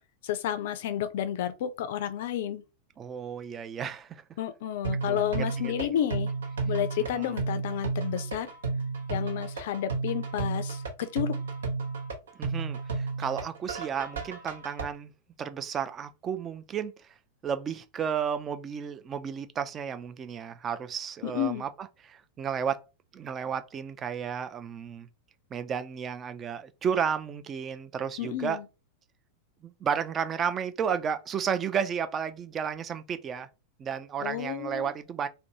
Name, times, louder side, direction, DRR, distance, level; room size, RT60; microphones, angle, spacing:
voice 1, 0.2-2.6 4.4-6.3 6.6-8.5 9.1-11.3 21.2-21.6 28.2-28.6 34.2-34.9, left 10 dB, 55° left, 0.4 m, -31 dB
voice 2, 3.0-4.2 5.1-5.7 7.0-7.3 12.4-15.1 15.4-16.9 17.4-22.8 23.1-25.1 25.5-28.6 29.6-33.5 33.8-35.3, right 7 dB, 25° right, 0.3 m, -33 dB
sound 1, 4.8-14.8, right 4 dB, 65° right, 0.7 m, -32 dB
2.5 x 2.2 x 2.8 m
figure-of-eight pair, 90°, 0 cm